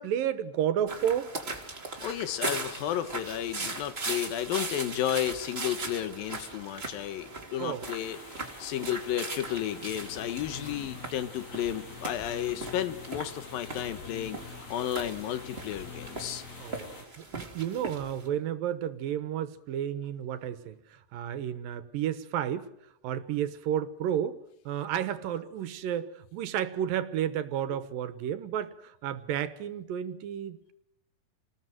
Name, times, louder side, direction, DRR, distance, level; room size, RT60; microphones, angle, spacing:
voice 1, 0.0-1.3 7.6-7.8 16.6-22.7 23.0-24.4 24.7-30.7, right 10 dB, 80° right, 12 dB, 2.9 m, -32 dB
sound 1, 0.9-18.3, right 3 dB, 20° right, 2.6 m, -39 dB
voice 2, 2.0-8.2 8.6-14.4 14.7-16.4, left 11 dB, 85° left, 12 dB, 3.0 m, -32 dB
sound 2, 7.8-17.1, left 3 dB, 70° left, 5.7 m, -48 dB
sound 3, 9.9-16.9, left 7 dB, 55° left, 1.1 m, -47 dB
28.0 x 19.5 x 7.9 m, 0.80 s
omnidirectional pair, 4.0 m